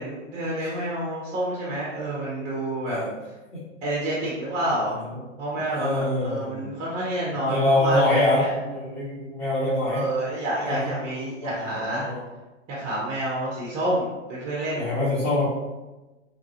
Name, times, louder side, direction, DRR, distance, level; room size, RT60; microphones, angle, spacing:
voice 1, 0.0-3.0 3.8-5.0 5.4-8.5 9.8-12.1 12.7-14.9, right 1 dB, 20° right, -5 dB, 0.6 m, -28 dB
voice 2, 5.8-6.7 7.4-10.0 10.6-10.9 11.4-12.2 14.8-15.5, left 1 dB, 20° left, -12 dB, 1.0 m, -24 dB
3.0 x 2.5 x 2.6 m, 1.1 s
hypercardioid pair, 130°, 38 cm